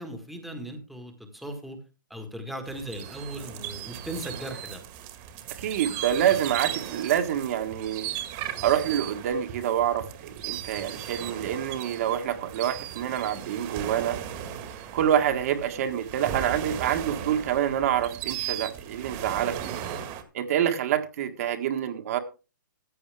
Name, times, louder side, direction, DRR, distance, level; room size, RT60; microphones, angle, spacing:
voice 1, 0.0-1.8 2.1-4.8, right 1 dB, ahead, 1.6 m, -38 dB
sound 1, 2.7-20.2, right 10 dB, 30° right, 1.8 m, -37 dB
voice 2, 5.6-8.1 8.6-14.2 14.9-19.8 20.3-22.2, right 10 dB, 45° right, 1.7 m, -27 dB
14.5 x 9.5 x 3.5 m
hypercardioid pair, 150°, 11 cm